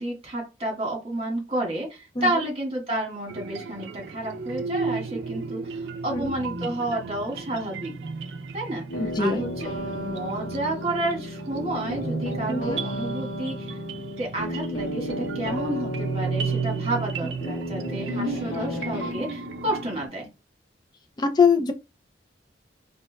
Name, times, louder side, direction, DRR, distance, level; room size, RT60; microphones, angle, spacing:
voice 1, 0.0-7.9 8.5-9.7 9.9-13.7 14.2-20.3, right 1 dB, 35° right, 1.5 m, -30 dB
sound 1, 3.3-20.1, right 4 dB, 80° right, 0.4 m, -34 dB
sound 2, 8.9-19.1, equal, 80° left, 1.2 m, -33 dB
voice 2, 9.0-9.4 12.5-12.8 17.4-17.5 21.2-21.7, left 5 dB, 25° left, 0.4 m, -22 dB
4.2 x 3.3 x 2.2 m
head